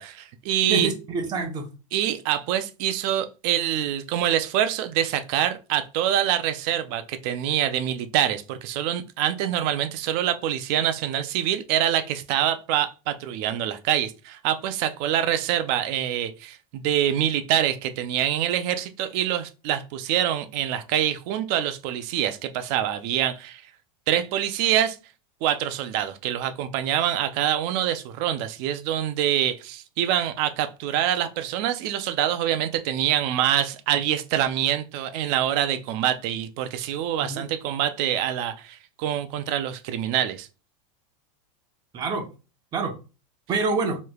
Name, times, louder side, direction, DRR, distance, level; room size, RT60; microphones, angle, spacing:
voice 1, 0.0-0.9 1.9-23.6 24.1-25.0 25.4-40.5, right 11 dB, 40° right, 0.5 m, -25 dB
voice 2, 0.7-1.7 37.2-37.4 41.9-42.3 42.7-42.9 43.5-44.0, right 3 dB, 25° right, 0.8 m, -26 dB
4.6 x 3.2 x 2.3 m
supercardioid pair, 160°, 18 cm